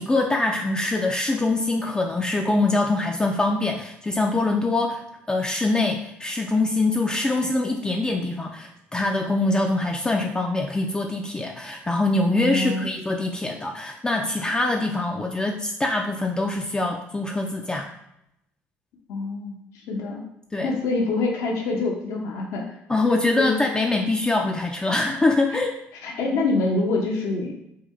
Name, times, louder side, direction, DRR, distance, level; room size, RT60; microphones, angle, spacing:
voice 1, 0.0-5.0 5.3-17.9 20.5-20.7 22.9-25.7, left 2 dB, 15° left, 1 dB, 0.4 m, -24 dB
voice 2, 12.3-13.0 19.1-19.6 19.9-20.2 20.6-22.7 23.3-23.6 25.5-25.6 26.0-27.5, left 3 dB, 75° left, 0 dB, 0.7 m, -25 dB
3.7 x 2.2 x 3.1 m, 0.80 s
supercardioid pair, 70°, 5 cm